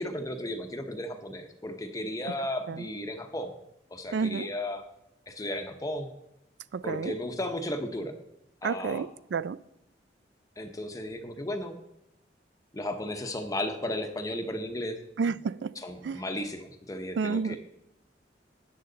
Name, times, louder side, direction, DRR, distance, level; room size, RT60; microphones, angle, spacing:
voice 1, 0.0-3.5 3.9-4.8 5.3-6.1 6.8-8.1 8.6-9.1 10.6-11.7 12.7-15.0 15.8-17.6, left 1 dB, 20° left, 0.8 m, -34 dB
voice 2, 4.1-4.5 6.7-7.1 8.6-9.6 15.2-15.7 16.0-16.2 17.2-17.6, right 5 dB, 75° right, 0.4 m, -30 dB
13.5 x 9.4 x 3.9 m
head